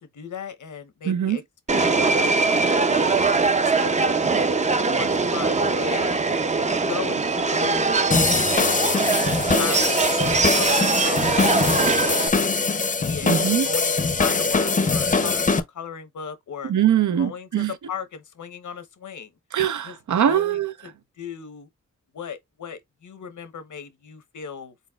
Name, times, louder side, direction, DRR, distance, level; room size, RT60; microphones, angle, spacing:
voice 1, 0.0-1.4 1.7-3.3 3.6-6.2 6.6-8.0 8.4-12.6 13.0-13.3 13.6-16.7 17.2-19.3 19.8-19.9 20.2-20.9 21.2-21.7 22.1-24.7, left 7 dB, 90° left, 0.9 m, -37 dB
voice 2, 1.0-1.4 13.2-13.7 16.6-17.7 19.5-20.7, right 10 dB, 85° right, 0.6 m, -22 dB
Subway metro underground, 1.7-12.3, right 4 dB, 25° right, 0.4 m, -22 dB
sound 1, 8.1-15.6, left 4 dB, 25° left, 0.5 m, -22 dB
4.2 x 4.0 x 2.3 m
wide cardioid pair, 100°, 29 cm